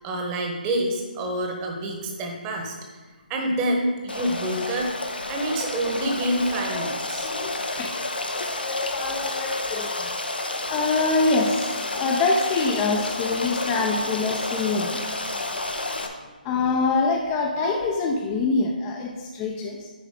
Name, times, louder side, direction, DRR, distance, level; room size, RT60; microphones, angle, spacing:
voice 1, 0.0-3.0 3.3-4.9 5.3-7.3, right 1 dB, 20° right, 1 dB, 1.0 m, -27 dB
Stream, 4.1-16.1, left 2 dB, 90° left, 0.9 m, -30 dB
voice 2, 7.2-8.0 8.3-10.1 10.7-15.1 15.3-15.8 16.4-19.9, left 3 dB, 20° left, 1 dB, 0.5 m, -25 dB
9.6 x 4.6 x 3.7 m, 1.3 s
figure-of-eight pair, 150°, 5 cm